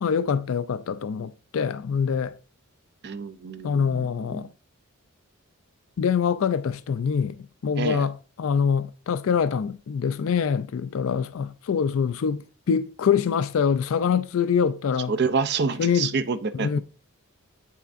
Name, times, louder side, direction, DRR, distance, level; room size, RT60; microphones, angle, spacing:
voice 1, 0.0-2.3 3.6-4.5 6.0-7.4 7.6-15.1 15.8-16.1 16.5-16.8, left 6 dB, 65° left, 0.4 m, -24 dB
voice 2, 3.0-4.4 7.8-8.0 15.1-16.8, right 5 dB, 50° right, 0.5 m, -28 dB
8.1 x 5.6 x 2.5 m
head